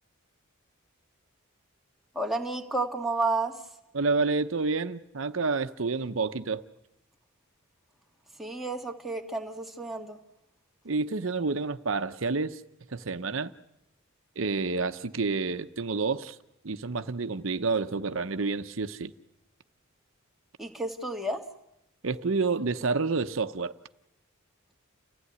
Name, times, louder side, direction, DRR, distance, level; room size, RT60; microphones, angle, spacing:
voice 1, 2.2-3.6 8.4-10.2 20.6-21.4, right 2 dB, ahead, 1.8 m, -31 dB
voice 2, 3.9-6.6 10.8-12.6 12.9-13.5 14.4-16.4 16.6-19.1 22.0-23.7, right 4 dB, 65° right, 0.8 m, -29 dB
29.5 x 16.0 x 9.6 m
head